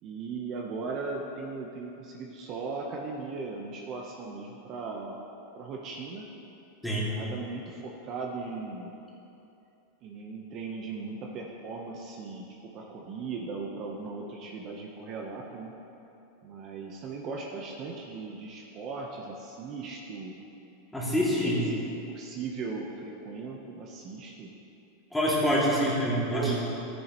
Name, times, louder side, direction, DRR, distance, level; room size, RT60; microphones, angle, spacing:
voice 1, 0.0-5.2 5.5-6.3 7.0-8.9 10.0-15.7 16.4-20.4 21.3-21.8 22.1-24.5 26.2-26.6, right 4 dB, 40° right, -1 dB, 0.9 m, -38 dB
voice 2, 6.8-7.2 20.9-21.7 25.1-26.5, equal, 5° left, -7 dB, 2.6 m, -26 dB
13.5 x 9.9 x 3.1 m, 2.9 s
supercardioid pair, 140°, 0 cm